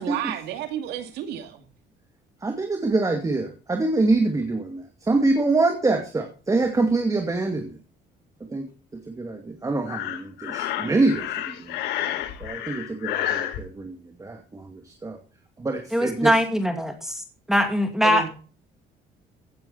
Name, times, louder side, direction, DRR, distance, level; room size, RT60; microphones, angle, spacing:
voice 1, 0.0-1.7 18.0-18.3, right 10 dB, 85° right, 2.5 m, -31 dB
voice 2, 2.4-7.8 8.5-8.7 9.1-11.8 12.4-15.2 15.6-16.4, right 3 dB, 20° right, 2.3 m, -25 dB
Breathing, 9.9-13.6, left 12 dB, 85° left, 1.7 m, -30 dB
voice 3, 15.9-17.2 17.5-18.3, equal, 5° right, 2.3 m, -22 dB
16.0 x 9.2 x 4.1 m
cardioid pair, 110°, 17 cm